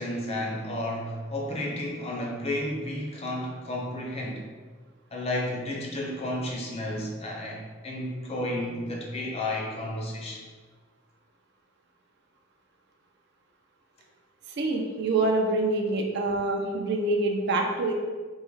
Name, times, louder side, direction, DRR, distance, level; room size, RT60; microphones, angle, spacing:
voice 1, 0.0-4.5 5.1-10.4, left 1 dB, 30° left, -1 dB, 0.5 m, -32 dB
voice 2, 14.6-17.9, right 2 dB, 60° right, 2 dB, 0.4 m, -26 dB
3.5 x 2.1 x 3.0 m, 1.4 s
head